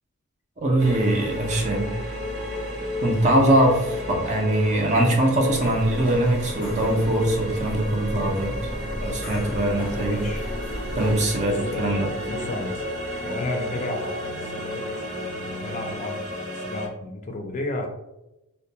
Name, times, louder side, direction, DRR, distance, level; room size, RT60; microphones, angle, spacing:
voice 1, 0.6-1.9 3.0-8.5 9.0-10.2 11.0-12.1, right 1 dB, 35° right, 1 dB, 0.5 m, -22 dB
sound 1, 0.8-16.9, left 1 dB, 75° right, 1.1 m, -32 dB
sound 2, 5.5-11.2, equal, 5° left, 0.7 m, -35 dB
voice 2, 9.9-10.4 11.4-12.8 13.2-14.9 15.4-16.2 16.5-17.9, left 2 dB, 35° left, 3 dB, 0.4 m, -32 dB
2.2 x 2.1 x 2.7 m, 0.93 s
head